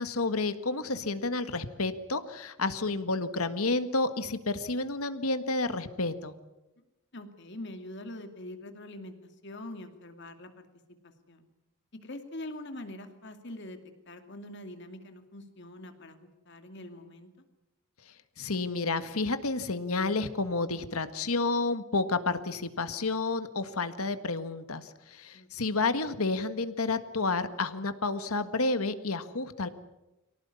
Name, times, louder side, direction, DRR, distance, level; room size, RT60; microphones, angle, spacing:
voice 1, 0.0-6.3 18.4-29.7, left 3 dB, 85° left, 11 dB, 1.6 m, -30 dB
voice 2, 7.1-10.7 11.0-11.5 12.0-13.8 14.1-17.3 25.3-25.7, left 1 dB, 55° left, 7 dB, 2.5 m, -44 dB
24.5 x 18.0 x 9.8 m, 1.0 s
head